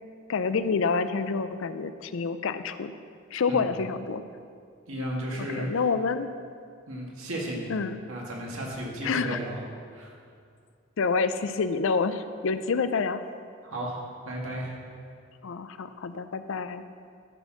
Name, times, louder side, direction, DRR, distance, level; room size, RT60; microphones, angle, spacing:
voice 1, 0.3-2.9 3.3-4.2 5.4-6.3 7.7-8.0 9.0-9.4 11.0-13.2 15.4-16.8, left 5 dB, 65° left, 11 dB, 0.4 m, -28 dB
voice 2, 4.9-5.7 6.9-7.7 8.1-9.6 9.9-10.1 13.6-14.7, equal, 75° right, -2 dB, 1.8 m, -34 dB
12.0 x 4.3 x 5.9 m, 2.2 s
head